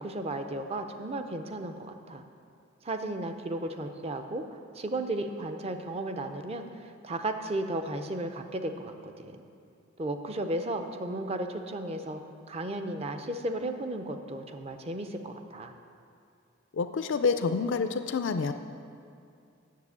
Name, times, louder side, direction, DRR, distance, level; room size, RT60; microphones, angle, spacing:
voice 1, 0.0-2.2 2.8-4.4 4.7-9.4 10.0-12.2 12.5-15.7, right 1 dB, 30° right, 6 dB, 0.5 m, -34 dB
voice 2, 16.7-18.5, left 5 dB, 65° left, 9 dB, 0.4 m, -28 dB
7.4 x 6.9 x 8.2 m, 2.4 s
head